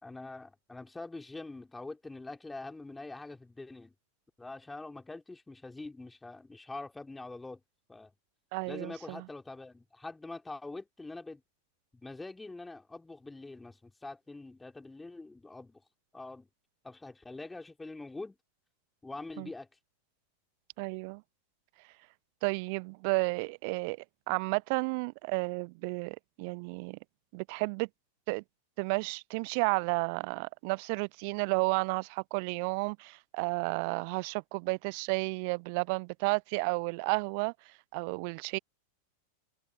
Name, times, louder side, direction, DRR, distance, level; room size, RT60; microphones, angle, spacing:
voice 1, 0.0-3.9 4.4-7.6 7.9-8.1 8.7-11.4 11.9-15.8 16.1-16.5 16.8-18.4 19.0-19.7, left 2 dB, 10° left, 3.2 m, -44 dB
voice 2, 8.5-9.2 19.4-19.5 20.8-21.2 22.4-24.0 24.3-27.0 27.3-27.9 28.3-28.4 28.8-38.6, right 33 dB, 45° right, 0.5 m, -32 dB
figure-of-eight pair, 90°, 0 cm